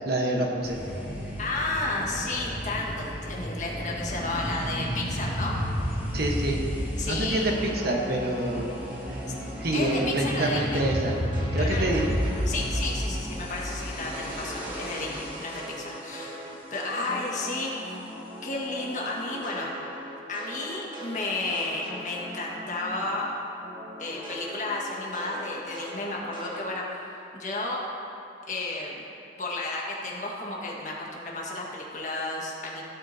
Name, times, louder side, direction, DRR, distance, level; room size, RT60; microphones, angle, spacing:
voice 1, 0.1-0.8 6.1-6.6 7.0-8.7 9.1-9.2 9.6-11.2 11.5-12.2, right 1 dB, 55° right, 0 dB, 1.2 m, -27 dB
sound 1, 0.6-15.9, equal, 10° right, 1.9 m, -32 dB
voice 2, 1.4-5.6 7.0-7.5 9.7-10.8 11.6-12.0 12.5-16.4 16.7-18.1 18.4-19.8 20.3-23.3 24.0-26.8 27.3-27.9 28.5-28.9 29.4-32.8, left 2 dB, 40° left, -3 dB, 1.6 m, -32 dB
sound 2, 7.4-13.7 14.0-23.3 23.6-26.6, equal, 25° right, 1.6 m, -40 dB
15.5 x 8.5 x 2.8 m, 2.8 s
head